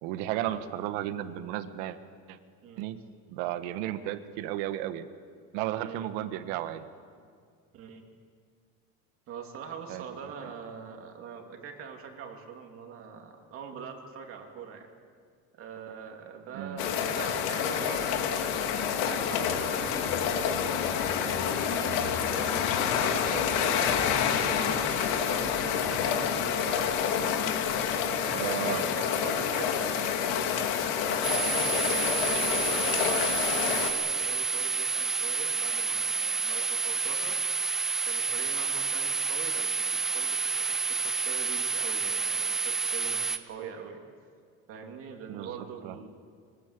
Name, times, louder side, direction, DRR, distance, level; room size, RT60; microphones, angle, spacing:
voice 1, 0.0-2.0 2.3-2.4 2.8-2.9 3.3-5.1 5.5-6.8 9.9-10.0 16.5-16.8 28.3-28.8 45.3-45.6 45.8-46.0, right 13 dB, 70° right, 10 dB, 1.5 m, -33 dB
voice 2, 5.8-6.1 7.7-8.0 9.3-14.9 15.6-18.6 18.9-27.3 28.0-30.2 30.9-37.4 38.1-44.0 44.7-46.1, right 6 dB, 40° right, 3 dB, 2.7 m, -44 dB
sound 1, 16.8-33.9, left 7 dB, 65° left, 2.5 m, -28 dB
sound 2, 31.2-43.4, right 5 dB, ahead, 0.6 m, -29 dB
24.0 x 20.0 x 8.3 m, 2.1 s
cardioid pair, 175°, 35 cm